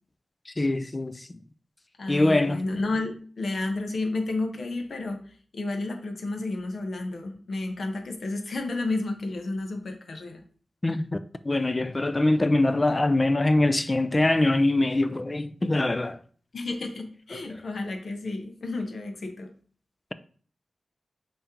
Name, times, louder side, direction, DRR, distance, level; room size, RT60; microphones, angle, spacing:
voice 1, 0.6-1.3 2.1-2.6 10.8-11.2 11.4-16.2, left 2 dB, 30° left, 0.4 m, -23 dB
voice 2, 2.0-10.4 16.5-19.5, left 2 dB, 70° left, 0.9 m, -31 dB
5.2 x 3.5 x 2.9 m
cardioid pair, 65°, 0 cm